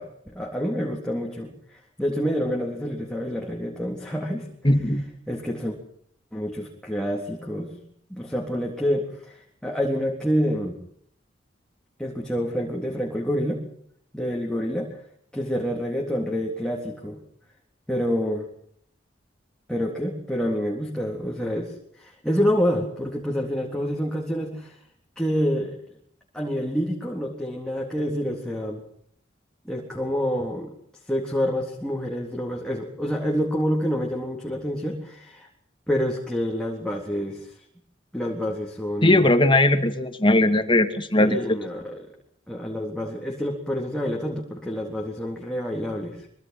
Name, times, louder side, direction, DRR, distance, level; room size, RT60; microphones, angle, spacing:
voice 1, 0.0-4.5 5.3-5.8 6.3-7.7 8.1-10.8 12.0-13.6 14.1-14.9 15.3-17.2 17.9-18.5 19.7-24.8 25.2-25.8 26.3-28.8 29.7-30.7 31.1-35.5 35.9-37.5 38.1-39.3 41.2-42.1 42.5-46.3, equal, 5° left, -1 dB, 3.6 m, -27 dB
voice 2, 4.6-5.1 39.0-41.4, left 1 dB, 25° left, 8 dB, 2.4 m, -19 dB
25.0 x 24.5 x 6.0 m, 0.65 s
head